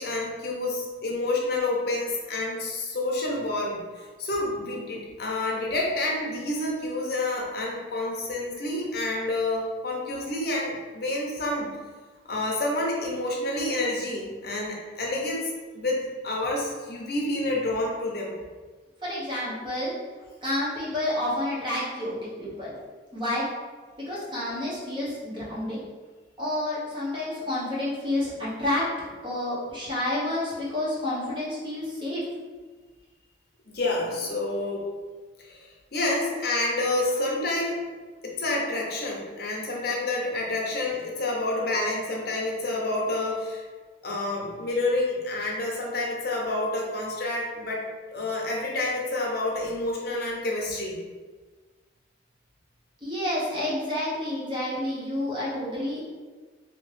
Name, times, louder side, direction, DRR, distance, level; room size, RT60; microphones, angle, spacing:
voice 1, 0.0-11.7 12.3-18.3 33.7-34.8 35.4-37.8 38.2-43.6 44.0-47.8 48.1-50.9, left 2 dB, 55° left, -2 dB, 0.7 m, -28 dB
voice 2, 19.0-19.9 20.4-22.7 23.1-23.4 24.1-25.8 26.4-28.9 29.2-32.2 53.0-56.0, left 1 dB, 25° right, -7 dB, 0.9 m, -29 dB
3.0 x 2.9 x 3.2 m, 1.4 s
head